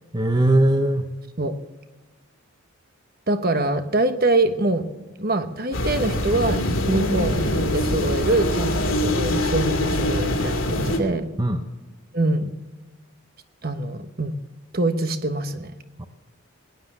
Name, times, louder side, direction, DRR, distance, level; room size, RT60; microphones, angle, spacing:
voice 1, 0.1-1.1 11.4-11.6 16.0-16.1, right 1 dB, 20° right, 7 dB, 0.7 m, -20 dB
voice 2, 3.3-4.9 5.2-11.3 12.1-12.5 13.6-14.4 14.7-15.7, right 2 dB, 45° right, 9 dB, 1.1 m, -24 dB
sound 1, 5.7-11.0, left 1 dB, 75° left, 2.5 m, -23 dB
19.0 x 10.0 x 7.2 m, 1.2 s
head